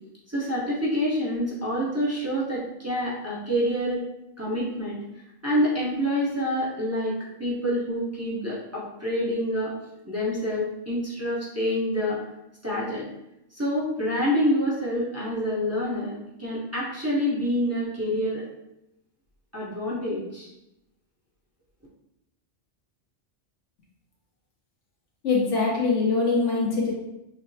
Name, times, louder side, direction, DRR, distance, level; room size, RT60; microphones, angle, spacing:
voice 1, 0.3-4.0 4.4-5.0 5.4-9.7 10.0-12.2 12.6-13.1 13.5-18.4 19.5-20.5, equal, 15° right, -7 dB, 0.8 m, -27 dB
voice 2, 25.2-26.9, left 4 dB, 80° left, -3 dB, 1.3 m, -23 dB
5.9 x 2.1 x 2.7 m, 0.87 s
omnidirectional pair, 1.2 m